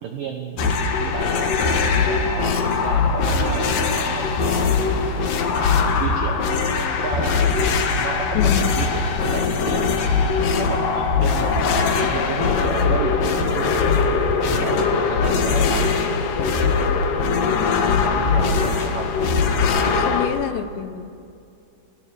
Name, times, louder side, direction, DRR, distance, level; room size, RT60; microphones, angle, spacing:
voice 1, 0.0-4.8 5.5-6.7 7.0-10.1 10.6-13.8 14.5-15.9 17.9-19.1, right 6 dB, 80° right, 4 dB, 1.9 m, -32 dB
sound 1, 0.6-20.3, left 5 dB, 60° left, 2.4 m, -21 dB
voice 2, 8.3-8.7 14.8-14.9 17.5-17.9 19.8-21.1, left 9 dB, 75° left, 10 dB, 2.9 m, -28 dB
20.0 x 18.5 x 7.2 m, 2.5 s
omnidirectional pair, 5.8 m